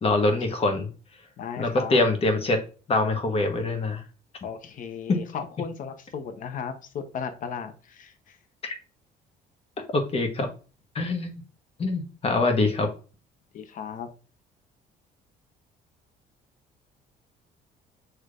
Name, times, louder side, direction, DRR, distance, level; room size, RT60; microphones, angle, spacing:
voice 1, 0.0-0.9 1.6-2.6 2.9-4.0 5.1-5.2 8.6-8.7 9.9-10.5 10.9-11.4 11.8-12.9, left 2 dB, 35° left, 5 dB, 1.1 m, -24 dB
voice 2, 1.4-2.0 4.4-8.4 13.5-14.1, left 7 dB, 50° left, 8 dB, 0.8 m, -35 dB
6.6 x 3.2 x 2.5 m, 0.36 s
cardioid pair, 110°, 17 cm